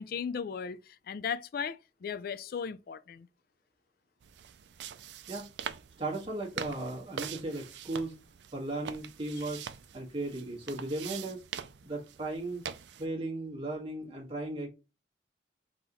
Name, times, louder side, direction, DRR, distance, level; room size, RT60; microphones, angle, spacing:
voice 1, 0.0-3.3, left 6 dB, 55° left, 0.4 m, -36 dB
sound 1, 4.2-13.1, right 8 dB, 75° right, 0.4 m, -44 dB
voice 2, 6.0-8.2 8.5-9.6 9.9-11.4 11.8-12.7 13.0-14.7, right 2 dB, 30° right, 1.5 m, -36 dB
4.0 x 2.9 x 3.9 m
head